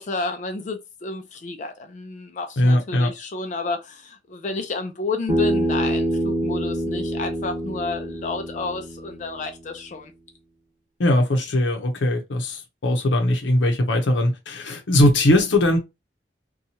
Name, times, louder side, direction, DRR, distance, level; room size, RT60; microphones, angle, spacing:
voice 1, 0.0-10.1, left 3 dB, 45° left, 0.4 m, -31 dB
voice 2, 2.6-3.1 11.0-15.8, left 1 dB, 90° left, 0.7 m, -20 dB
Bass guitar, 5.3-9.6, right 1 dB, 25° right, 1.0 m, -26 dB
2.8 x 2.3 x 2.6 m
head